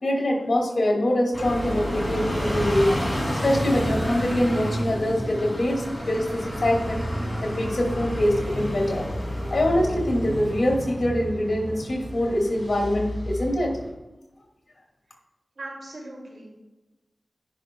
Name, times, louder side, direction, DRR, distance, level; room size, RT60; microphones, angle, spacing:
voice 1, 0.0-3.0 3.4-7.1 7.4-9.1 9.5-13.8, left 1 dB, 65° left, 0 dB, 2.4 m, -24 dB
sound 1, 1.3-13.9, equal, 25° left, 2.7 m, -30 dB
voice 2, 15.6-16.5, right 2 dB, 70° right, -2 dB, 2.6 m, -39 dB
11.5 x 5.8 x 2.3 m, 1.0 s
cardioid pair, 45°, 0 cm